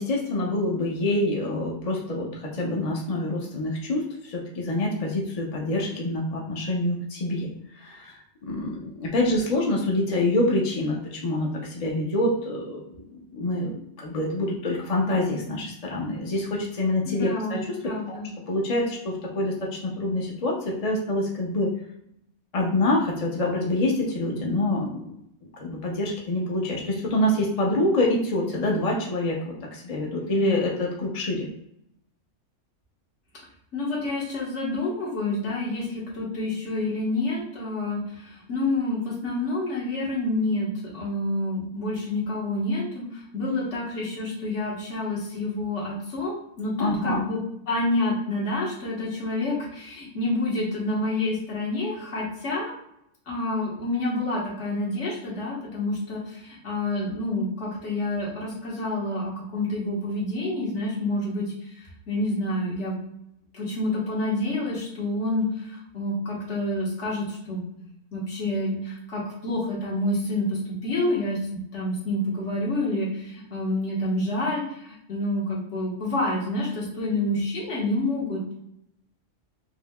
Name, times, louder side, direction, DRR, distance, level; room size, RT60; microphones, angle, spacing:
voice 1, 0.0-7.5 7.8-13.0 13.3-17.8 18.1-18.2 18.5-19.5 19.8-21.7 22.5-25.0 25.6-31.5 46.8-47.3, left 1 dB, 40° left, -2 dB, 0.6 m, -26 dB
voice 2, 17.1-18.3 33.7-47.4 47.7-52.7 53.3-63.0 63.5-67.6 68.1-78.5, left 2 dB, 70° left, -5 dB, 1.6 m, -28 dB
5.2 x 2.7 x 2.2 m, 0.76 s
omnidirectional pair, 1.3 m